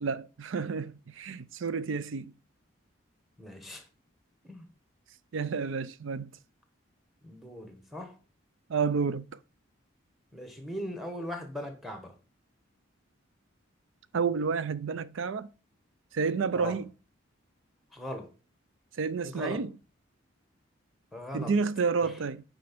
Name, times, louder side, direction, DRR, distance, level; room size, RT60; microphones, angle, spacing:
voice 1, 0.0-2.3 5.3-6.3 8.7-9.3 14.1-15.5 16.1-16.9 19.0-19.7 21.3-22.4, right 5 dB, 65° right, 0.5 m, -30 dB
voice 2, 3.4-3.9 4.4-4.7 7.2-8.2 10.3-12.1 16.5-16.8 17.9-18.3 19.2-19.7 21.1-21.5 22.0-22.2, left 1 dB, ahead, 1.1 m, -39 dB
6.3 x 4.9 x 6.0 m
head